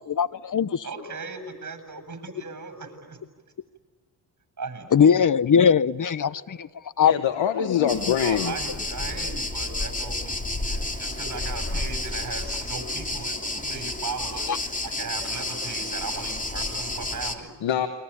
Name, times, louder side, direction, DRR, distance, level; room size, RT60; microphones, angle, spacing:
voice 1, 0.1-0.9 4.9-6.7 7.0-7.1 14.5-14.6, left 7 dB, 45° left, 19 dB, 0.9 m, -20 dB
voice 2, 0.8-3.2 4.6-5.1 6.3-6.4 8.2-17.5, right 4 dB, 40° right, 7 dB, 7.9 m, -37 dB
voice 3, 7.0-8.6 17.6-17.9, left 9 dB, 80° left, 9 dB, 1.5 m, -24 dB
sound 1, 7.9-17.4, left 2 dB, 15° left, 3.1 m, -31 dB
29.0 x 24.0 x 8.6 m, 1.4 s
cardioid pair, 55°, 44 cm